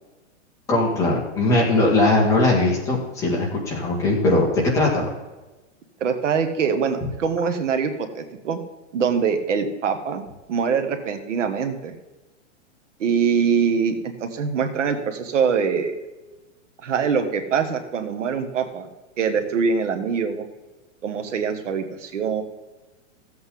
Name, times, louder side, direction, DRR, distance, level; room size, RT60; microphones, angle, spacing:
voice 1, 0.7-5.1, left 2 dB, 10° left, -4 dB, 1.7 m, -20 dB
voice 2, 6.0-8.6 8.9-10.2 10.5-11.9 13.0-13.9 14.2-16.0 16.8-18.9 19.2-20.4 21.0-22.4, right 6 dB, 75° right, 7 dB, 1.6 m, -23 dB
15.0 x 8.1 x 3.8 m, 1.1 s
supercardioid pair, 175°, 37 cm